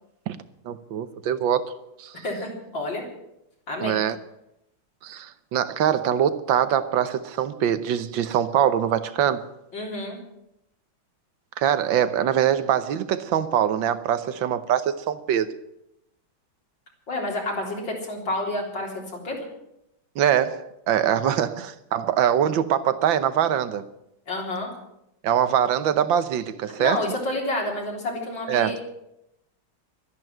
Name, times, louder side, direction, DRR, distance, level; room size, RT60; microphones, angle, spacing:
voice 1, 0.6-1.7 2.0-2.1 3.8-4.2 5.0-9.4 11.6-15.5 20.1-23.9 25.2-27.0 28.5-28.8, right 9 dB, 70° right, 1.6 m, -23 dB
voice 2, 2.2-3.0 3.7-4.0 9.7-10.2 17.1-19.4 24.3-24.7 26.8-28.9, left 1 dB, 60° left, 4.5 m, -29 dB
13.0 x 11.0 x 9.1 m
omnidirectional pair, 2.3 m